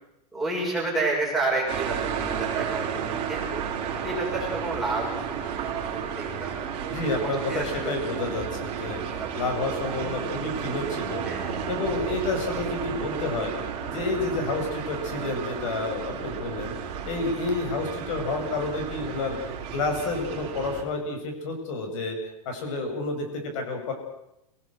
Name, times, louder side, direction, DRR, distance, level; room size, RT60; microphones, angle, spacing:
voice 1, 0.3-8.0 8.8-9.5 11.2-11.5, right 2 dB, ahead, -5 dB, 6.8 m, -31 dB
sound 1, 1.7-20.8, right 7 dB, 25° right, 5.7 m, -32 dB
voice 2, 6.9-9.0 9.3-11.2 11.7-13.5 13.9-16.7 17.0-19.4 19.7-22.2 22.4-23.9, left 3 dB, 50° left, 5 dB, 7.7 m, -29 dB
28.5 x 19.0 x 8.0 m, 0.85 s
supercardioid pair, 170°, 20 cm